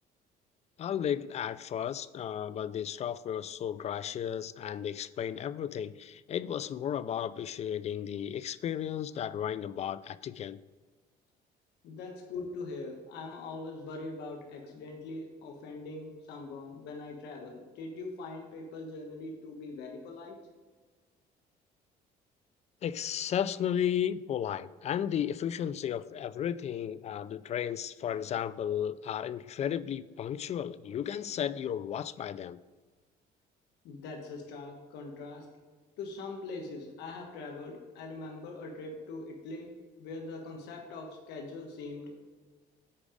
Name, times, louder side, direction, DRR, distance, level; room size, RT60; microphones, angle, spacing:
voice 1, 0.8-10.6 22.8-32.6, left 9 dB, 40° left, 16 dB, 0.4 m, -34 dB
voice 2, 11.8-20.4 33.8-35.5 36.0-39.7 40.0-42.1, left 3 dB, 80° left, 1 dB, 1.4 m, -42 dB
8.6 x 5.0 x 5.0 m, 1.4 s
cardioid pair, 110°, 17 cm